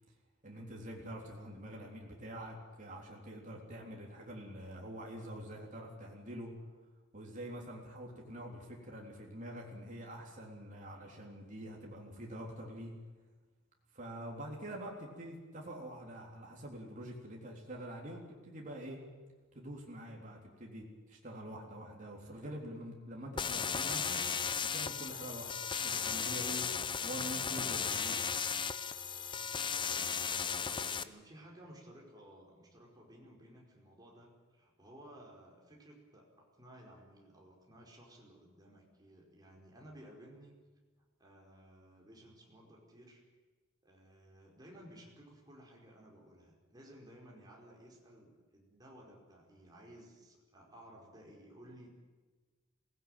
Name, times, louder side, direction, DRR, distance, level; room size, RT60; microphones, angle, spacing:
voice 1, 0.4-6.5 7.1-12.9 13.9-19.0 19.5-24.2 24.7-26.6 27.0-28.2, right 1 dB, 40° right, -2 dB, 3.6 m, -46 dB
sound 1, 23.4-31.0, left 6 dB, 25° left, 0.7 m, -35 dB
voice 2, 29.5-40.5 41.2-43.2 43.8-52.0, right 1 dB, 20° right, -2 dB, 4.8 m, -56 dB
22.5 x 17.5 x 9.2 m, 1.3 s
head